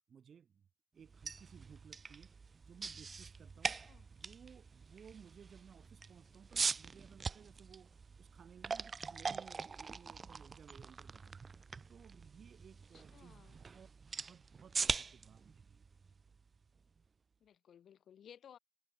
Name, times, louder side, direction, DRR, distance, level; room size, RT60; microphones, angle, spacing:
voice 1, 0.1-0.7 0.9-2.3 2.6-3.8 4.1-11.6 11.9-13.9 14.1-15.9, right 7 dB, 70° right, 7.5 m, -59 dB
sound 1, 1.0-17.0, right 5 dB, 45° right, 0.4 m, -43 dB
voice 2, 3.7-4.1 12.9-13.6 17.4-18.6, left 9 dB, 85° left, 2.2 m, -59 dB
cardioid pair, 100°, 0 cm